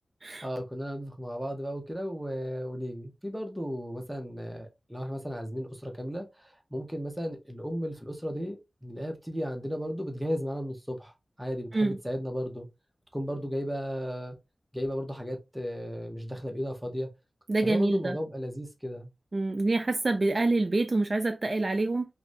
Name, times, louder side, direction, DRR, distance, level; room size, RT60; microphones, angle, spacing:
voice 1, 0.4-11.1 11.4-12.7 13.1-14.4 14.7-17.1 17.6-19.1, equal, 5° right, 0.7 m, -35 dB
voice 2, 17.5-18.2 19.3-22.1, right 2 dB, 40° right, 0.3 m, -26 dB
2.6 x 2.5 x 3.1 m
wide cardioid pair, 110°, 0 cm